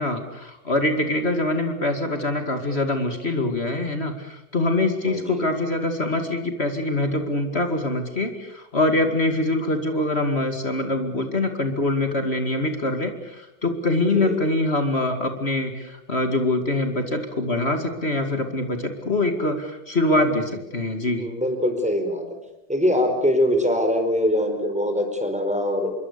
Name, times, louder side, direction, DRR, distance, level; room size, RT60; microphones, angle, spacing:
voice 1, 0.0-21.3, left 2 dB, 35° left, 6 dB, 2.5 m, -24 dB
voice 2, 5.0-5.4 14.1-14.4 21.2-22.2 22.7-25.9, equal, 5° right, 5 dB, 4.6 m, -23 dB
26.5 x 23.5 x 6.9 m, 0.88 s
omnidirectional pair, 2.1 m